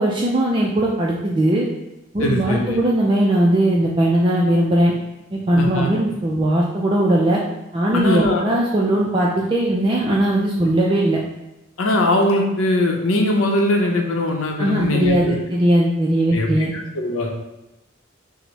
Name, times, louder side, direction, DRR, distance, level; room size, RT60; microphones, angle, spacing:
voice 1, 0.0-1.7 2.1-4.9 5.3-7.4 7.7-11.2 14.6-16.7, right 1 dB, 25° right, -3 dB, 0.4 m, -19 dB
voice 2, 2.2-2.8 5.6-5.9 7.9-8.4 11.8-15.3 16.3-17.3, left 1 dB, 85° left, 1 dB, 0.7 m, -21 dB
5.9 x 2.1 x 3.1 m, 0.95 s
head